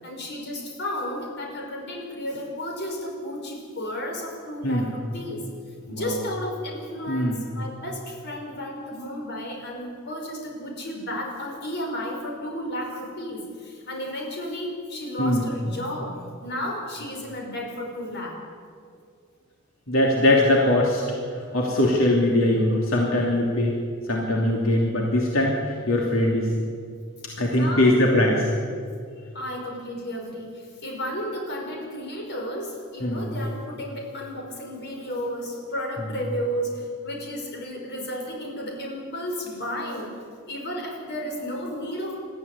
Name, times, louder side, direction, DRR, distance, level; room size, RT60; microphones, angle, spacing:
voice 1, 0.0-5.5 5.9-18.4 27.4-28.0 29.3-40.1 40.5-42.2, equal, 55° left, 0 dB, 5.2 m, -33 dB
voice 2, 19.9-21.0 21.5-23.7 24.1-26.5 27.4-28.5 33.0-33.4, left 1 dB, 85° left, -2 dB, 2.9 m, -21 dB
21.0 x 14.0 x 9.9 m, 2.2 s
head